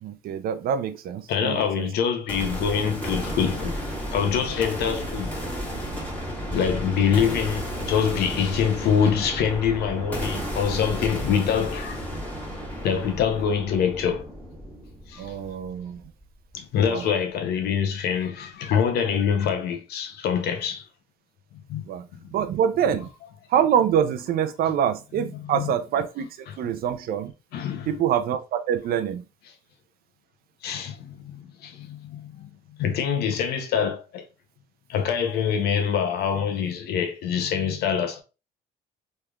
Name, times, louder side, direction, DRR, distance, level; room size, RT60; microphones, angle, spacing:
voice 1, 0.0-1.9 15.2-16.1 16.8-17.1 21.9-22.0 22.3-23.1 23.5-27.3 27.9-29.2, right 8 dB, 65° right, 0.5 m, -25 dB
voice 2, 1.3-3.8 4.1-5.3 6.5-12.1 12.8-14.2 15.1-15.3 16.5-20.9 21.7-21.8 22.2-22.3 25.5-25.7 26.5-26.6 27.5-27.9 30.6-32.5 32.8-34.2 34.9-38.2, left 7 dB, 70° left, 0.8 m, -25 dB
sound 1, 2.3-16.2, equal, 10° left, 1.7 m, -33 dB
3.3 x 3.2 x 2.3 m
cardioid pair, 110°, 17 cm